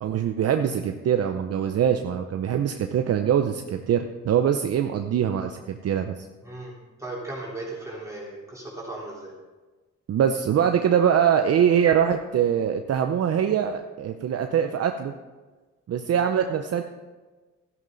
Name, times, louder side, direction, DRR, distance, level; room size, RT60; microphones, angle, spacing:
voice 1, 0.0-6.1 10.1-15.1 15.9-16.8, right 8 dB, 55° right, 6 dB, 0.7 m, -23 dB
voice 2, 7.0-9.3, right 2 dB, 10° right, -6 dB, 3.8 m, -36 dB
12.5 x 11.0 x 4.0 m, 1.3 s
cardioid pair, 90°, 30 cm